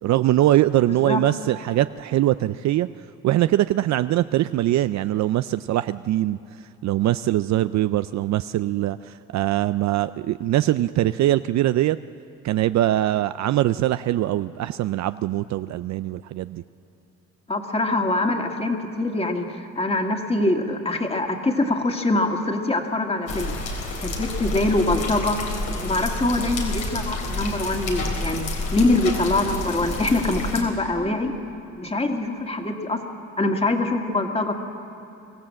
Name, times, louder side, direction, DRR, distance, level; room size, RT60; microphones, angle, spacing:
voice 1, 0.0-2.9 3.2-6.4 6.8-12.0 12.4-16.6, right 14 dB, 65° right, 13 dB, 0.4 m, -22 dB
voice 2, 17.5-23.5 24.0-25.4 25.8-31.3 31.8-33.0 33.4-34.5, left 2 dB, 20° left, 3 dB, 2.2 m, -24 dB
sound 1, 23.3-30.6, left 2 dB, 80° left, 3.7 m, -29 dB
24.5 x 15.5 x 7.6 m, 2.9 s
cardioid pair, 90°, 30 cm